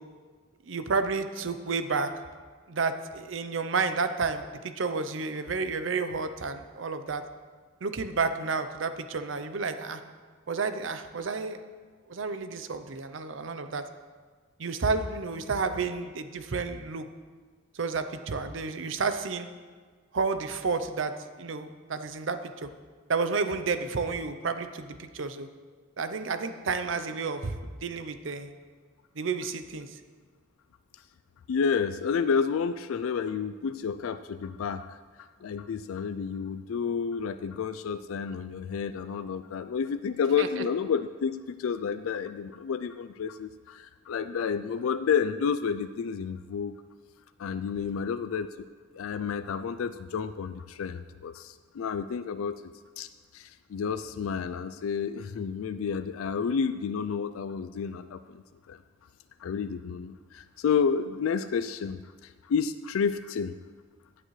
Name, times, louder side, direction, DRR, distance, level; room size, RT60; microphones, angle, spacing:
voice 1, 0.7-2.1 2.7-7.2 7.8-10.0 10.5-11.6 12.1-13.8 14.6-17.1 17.7-19.5 20.1-22.7 23.1-25.5 26.0-28.5 29.2-29.9 40.4-40.6, right 4 dB, 65° right, 9 dB, 0.6 m, -31 dB
voice 2, 31.5-46.8 47.4-48.5 48.9-52.6 53.0-58.8 59.4-63.6, left 6 dB, 90° left, 11 dB, 0.4 m, -30 dB
16.0 x 8.8 x 3.2 m, 1.5 s
head